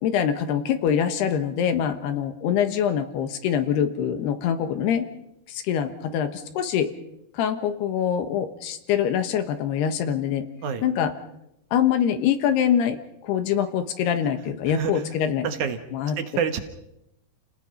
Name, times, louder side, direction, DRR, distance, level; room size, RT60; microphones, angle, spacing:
voice 1, 0.0-5.1 5.5-6.9 7.3-10.5 10.8-11.1 11.7-15.5 15.9-16.2, left 8 dB, 75° left, 8 dB, 3.3 m, -24 dB
voice 2, 14.7-15.0 15.4-15.8 16.2-16.6, right 7 dB, 65° right, 8 dB, 2.2 m, -27 dB
30.0 x 18.5 x 5.5 m, 0.87 s
omnidirectional pair, 4.9 m